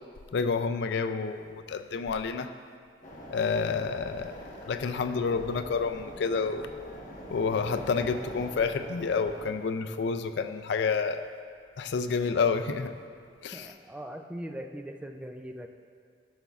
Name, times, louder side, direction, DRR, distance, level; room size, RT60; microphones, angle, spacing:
voice 1, 0.3-2.5 3.3-4.3 4.7-6.7 7.3-11.2 11.8-12.9 13.4-13.7, left 5 dB, 65° left, 9 dB, 0.4 m, -29 dB
sound 1, 3.0-9.5, equal, 45° left, 1.2 m, -44 dB
voice 2, 13.5-15.7, right 1 dB, 5° right, 4 dB, 0.3 m, -40 dB
12.5 x 6.8 x 2.4 m, 2.2 s
head